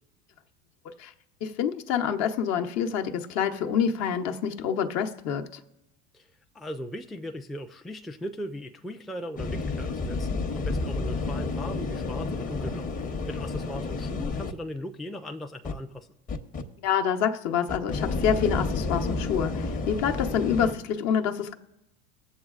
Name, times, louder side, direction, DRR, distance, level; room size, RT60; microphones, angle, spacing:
voice 1, 1.4-5.6 16.8-21.5, left 8 dB, 55° left, 0.9 m, -27 dB
voice 2, 6.5-12.9 13.3-16.1, left 1 dB, ahead, 0.4 m, -38 dB
sound 1, 9.4-14.5 15.6-15.7 16.3-16.6 17.7-20.7, left 3 dB, 25° left, 0.9 m, -30 dB
21.0 x 7.3 x 2.4 m
supercardioid pair, 100°, 32 cm